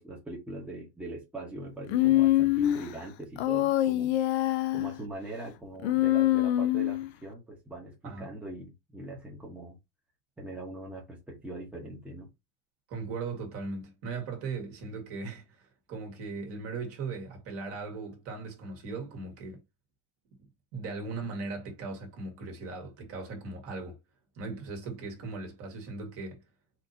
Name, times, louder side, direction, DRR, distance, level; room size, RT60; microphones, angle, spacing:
voice 1, 0.0-4.2 4.7-9.8 10.4-12.3, right 2 dB, 5° right, 1.0 m, -42 dB
Human voice, 1.9-2.8 3.4-5.0 5.8-7.1, left 14 dB, 85° left, 0.6 m, -25 dB
voice 2, 12.9-19.6 20.4-24.0 24.3-26.4, right 4 dB, 45° right, 1.7 m, -38 dB
4.3 x 2.7 x 2.7 m
supercardioid pair, 145°, 32 cm